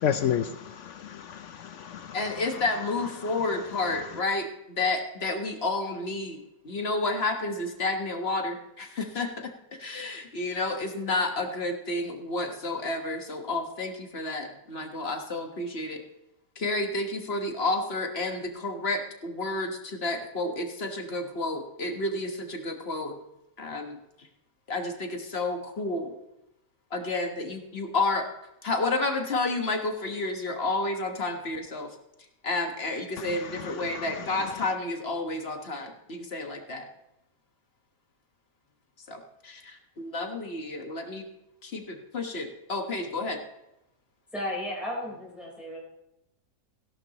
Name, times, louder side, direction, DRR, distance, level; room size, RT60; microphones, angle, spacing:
voice 1, 0.0-2.1 33.9-34.0, left 9 dB, 75° left, 11 dB, 0.7 m, -30 dB
voice 2, 2.1-9.5 9.8-16.0 16.6-23.2 23.6-24.0 24.7-26.1 26.9-28.3 28.6-31.9 32.4-36.8 39.1-41.2 41.6-43.4, left 2 dB, 40° left, 4 dB, 1.5 m, -30 dB
voice 3, 44.3-45.8, left 1 dB, ahead, -4 dB, 3.8 m, -34 dB
17.0 x 11.0 x 3.0 m, 0.89 s
omnidirectional pair, 1.8 m